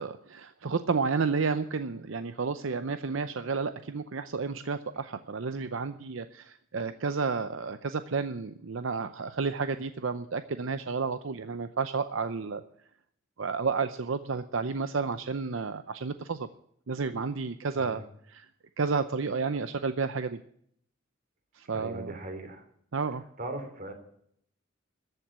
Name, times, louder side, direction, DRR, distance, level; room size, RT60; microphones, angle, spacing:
voice 1, 0.0-12.6 13.4-16.5 16.9-18.0 18.3-18.5 18.8-20.4 21.6-22.1 22.9-23.2, right 4 dB, 75° right, 10 dB, 0.6 m, -31 dB
voice 2, 17.7-18.0 21.6-22.6 23.4-23.9, right 2 dB, 45° right, 5 dB, 3.3 m, -39 dB
14.5 x 7.8 x 8.7 m, 0.67 s
head